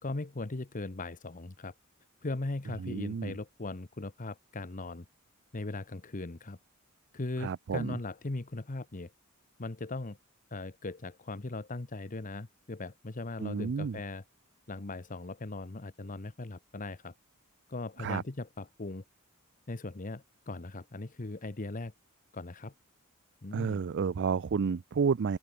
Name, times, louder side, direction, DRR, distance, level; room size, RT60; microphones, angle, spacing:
voice 1, 0.0-1.7 2.2-5.0 5.5-6.6 7.1-9.1 9.6-10.2 10.5-14.2 14.7-17.1 17.7-19.0 19.7-21.9 22.3-22.7 23.4-23.8, left 2 dB, 40° left, 1.0 m, -39 dB
voice 2, 2.8-3.3 7.4-8.0 13.4-14.0 18.0-18.2 23.5-25.4, right 6 dB, 55° right, 0.4 m, -31 dB
open air
head